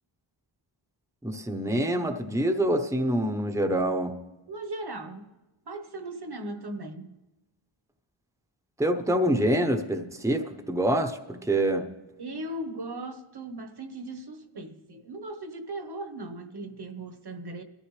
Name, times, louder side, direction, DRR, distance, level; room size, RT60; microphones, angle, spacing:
voice 1, 1.2-4.2 8.8-11.8, right 1 dB, 5° right, 1.0 m, -26 dB
voice 2, 4.5-5.3 5.7-7.2 12.2-17.6, right 2 dB, 55° right, 1.3 m, -38 dB
22.0 x 13.5 x 3.3 m
wide cardioid pair, 85°, 48 cm